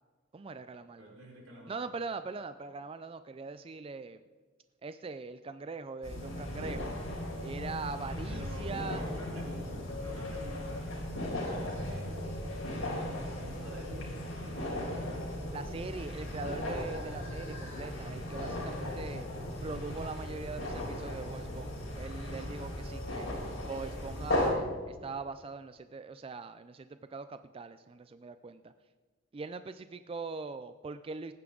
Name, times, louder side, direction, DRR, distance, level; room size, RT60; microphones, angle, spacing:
voice 1, 0.3-1.1 1.7-4.2 4.8-6.9 7.4-9.0 15.5-19.3 19.6-23.3 23.7-28.7 29.3-31.3, right 4 dB, 25° right, 11 dB, 0.3 m, -41 dB
voice 2, 1.0-1.7 8.3-12.1 12.7-15.5, equal, 90° right, -3 dB, 4.8 m, -49 dB
sound 1, 6.0-24.5, left 1 dB, 85° left, 3.8 m, -37 dB
18.5 x 9.6 x 3.8 m, 1.4 s
head